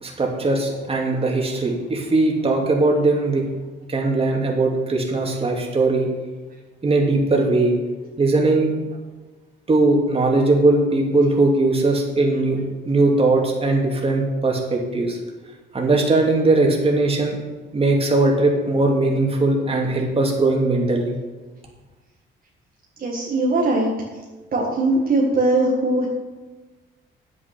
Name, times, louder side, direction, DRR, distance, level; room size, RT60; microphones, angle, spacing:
voice 1, 0.0-3.5 3.9-6.1 6.8-7.7 8.2-8.7 9.7-12.6 12.9-15.2 15.7-17.4 17.7-21.2, right 2 dB, 30° right, 0 dB, 2.7 m, -19 dB
voice 2, 23.0-23.9 24.5-26.1, right 2 dB, 45° right, -3 dB, 2.0 m, -20 dB
9.4 x 8.8 x 6.0 m, 1.2 s
cardioid pair, 90°, 20 cm